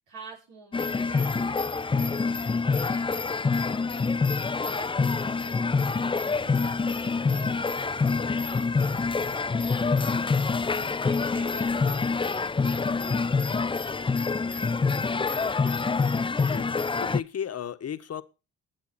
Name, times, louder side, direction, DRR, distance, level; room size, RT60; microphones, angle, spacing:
voice 1, 0.0-10.3 10.7-14.8, right 3 dB, 85° right, 5.7 m, -48 dB
sound 1, 0.7-17.2, left 4 dB, 15° left, 0.6 m, -26 dB
voice 2, 17.0-18.2, left 8 dB, 50° left, 1.5 m, -34 dB
20.5 x 7.8 x 4.3 m
supercardioid pair, 65°, 33 cm